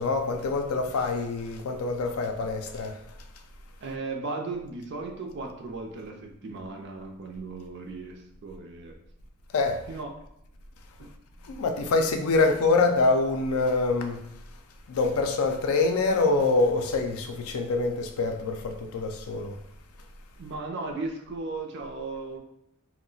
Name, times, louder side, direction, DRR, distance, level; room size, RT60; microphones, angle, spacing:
voice 1, 0.0-3.0 9.5-9.8 11.4-14.3 14.9-19.6, left 3 dB, 75° left, 0.4 m, -25 dB
voice 2, 3.8-9.0 9.9-10.1 11.0-11.1 20.4-22.4, right 3 dB, 55° right, 0.5 m, -36 dB
2.3 x 2.1 x 3.7 m
head